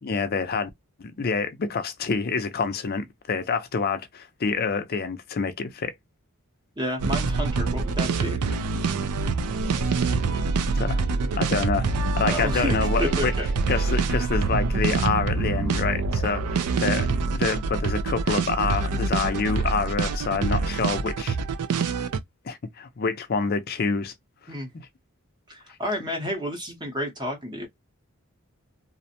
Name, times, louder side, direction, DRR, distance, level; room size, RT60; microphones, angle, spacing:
voice 1, 0.0-0.7 1.0-5.9 10.7-11.0 11.4-11.9 12.2-13.3 13.7-21.4 22.5-24.1 24.7-24.9, left 4 dB, 45° left, 0.5 m, -27 dB
voice 2, 6.8-8.4 12.2-13.5 24.5-24.7 25.5-27.7, equal, 20° right, 0.7 m, -30 dB
sound 1, 7.0-22.2, right 4 dB, 90° right, 0.4 m, -25 dB
2.5 x 2.1 x 2.6 m
head